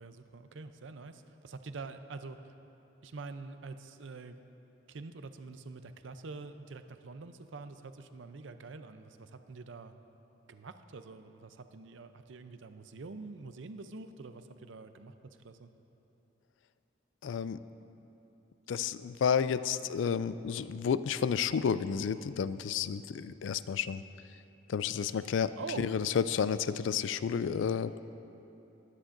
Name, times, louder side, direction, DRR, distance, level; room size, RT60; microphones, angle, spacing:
voice 1, 0.0-2.4 3.0-4.4 4.9-9.9 10.5-15.1 15.4-15.7 25.6-25.9, right 3 dB, 75° right, 9 dB, 0.6 m, -45 dB
voice 2, 17.2-17.6 18.7-24.0 24.7-28.0, left 7 dB, 70° left, 14 dB, 0.3 m, -31 dB
21.0 x 9.8 x 2.6 m, 3.0 s
head